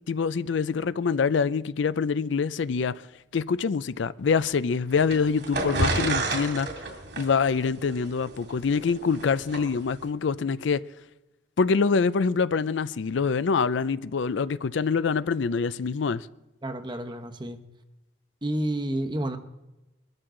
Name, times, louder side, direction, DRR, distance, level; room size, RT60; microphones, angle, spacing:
voice 1, 0.1-3.0 3.3-6.7 7.2-10.8 11.6-16.3, left 5 dB, 80° left, 0.5 m, -25 dB
sound 1, 4.9-9.6, right 2 dB, 65° right, 2.5 m, -29 dB
voice 2, 16.6-17.6 18.4-19.4, right 1 dB, 25° right, 1.0 m, -30 dB
22.0 x 13.0 x 3.8 m
head